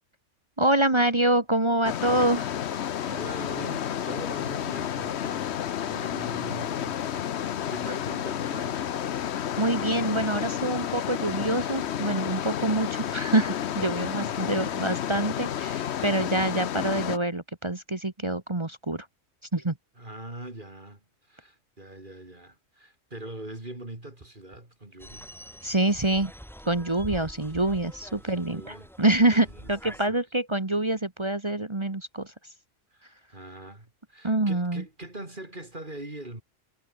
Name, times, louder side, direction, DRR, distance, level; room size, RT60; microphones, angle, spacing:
voice 1, 0.6-2.5 9.6-19.1 19.5-19.7 25.6-26.3 26.6-32.3 34.2-34.8, right 1 dB, 25° right, 1.5 m, -26 dB
sound 1, 1.8-17.2, left 9 dB, 65° left, 1.0 m, -31 dB
voice 2, 3.0-5.5 5.8-9.0 14.2-14.6 20.0-25.3 28.1-28.9 29.4-30.2 32.9-36.4, right 1 dB, 40° right, 4.2 m, -42 dB
sound 2, 25.0-30.0, equal, ahead, 7.7 m, -45 dB
omnidirectional pair, 1.3 m